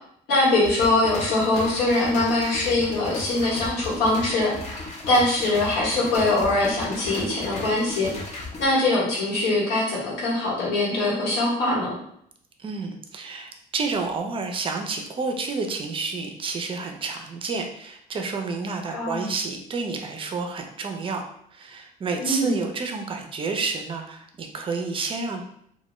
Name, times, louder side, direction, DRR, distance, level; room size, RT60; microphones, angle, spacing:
voice 1, 0.3-12.0 18.9-19.3 22.2-22.6, left 2 dB, 85° left, -5 dB, 1.1 m, -23 dB
sound 1, 0.6-8.6, left 2 dB, 40° left, 0.6 m, -36 dB
voice 2, 12.6-21.2 21.5-25.4, right 4 dB, 30° right, 4 dB, 0.4 m, -30 dB
2.2 x 2.1 x 3.0 m, 0.69 s
cardioid pair, 110°, 17 cm